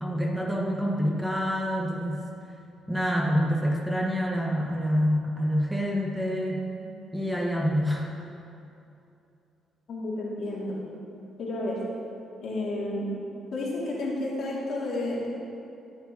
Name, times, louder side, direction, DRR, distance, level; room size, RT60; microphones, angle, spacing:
voice 1, 0.0-2.2 2.9-6.6 7.1-8.1, equal, 5° right, -2 dB, 1.1 m, -27 dB
voice 2, 9.9-10.8 11.4-11.8 12.4-13.1 13.5-15.3, left 2 dB, 65° left, -5 dB, 2.1 m, -31 dB
13.5 x 7.2 x 2.8 m, 2.7 s
cardioid pair, 90°, 0 cm